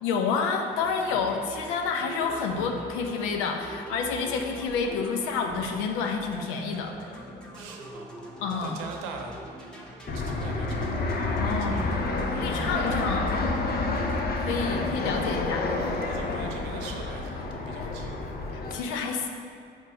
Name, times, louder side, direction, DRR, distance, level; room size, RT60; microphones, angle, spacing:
voice 1, 0.0-6.9 8.4-8.8 11.3-11.8 12.4-13.3 14.4-15.6 18.5-19.3, left 5 dB, 85° left, 4 dB, 0.6 m, -29 dB
sound 1, 0.7-16.6, right 1 dB, 5° left, 1.2 m, -43 dB
voice 2, 7.5-8.1 8.6-9.4 10.1-13.5 14.5-15.3 16.0-18.2, right 4 dB, 80° right, 3 dB, 0.8 m, -43 dB
Fixed-wing aircraft airplane, 10.1-18.8, left 3 dB, 50° left, 0.8 m, -29 dB
4.6 x 4.4 x 5.1 m, 2.3 s
hypercardioid pair, 60°, 21 cm